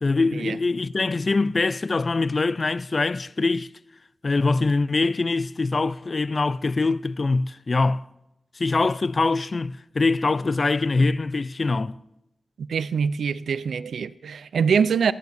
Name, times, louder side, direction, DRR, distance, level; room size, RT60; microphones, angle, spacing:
voice 1, 0.0-3.7 4.2-8.0 8.6-12.0, left 3 dB, 45° left, 0.4 m, -23 dB
voice 2, 12.6-15.1, right 6 dB, 85° right, 0.4 m, -24 dB
26.0 x 10.5 x 2.6 m
cardioid pair, 60°, 0 cm